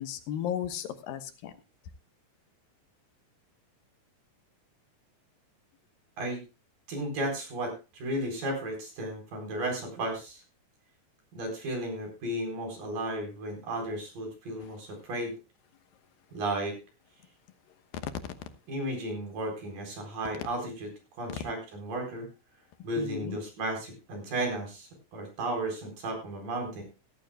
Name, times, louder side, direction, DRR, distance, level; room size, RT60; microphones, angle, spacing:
voice 1, 0.0-1.5 18.0-18.1 23.0-23.4, left 10 dB, 80° left, 9 dB, 2.9 m, -35 dB
voice 2, 6.9-10.4 11.3-15.3 16.3-16.8 18.7-20.9 21.2-22.3 22.8-26.8, right 1 dB, 65° right, 2 dB, 5.9 m, -34 dB
17.0 x 14.0 x 2.2 m, 0.30 s
omnidirectional pair, 4.2 m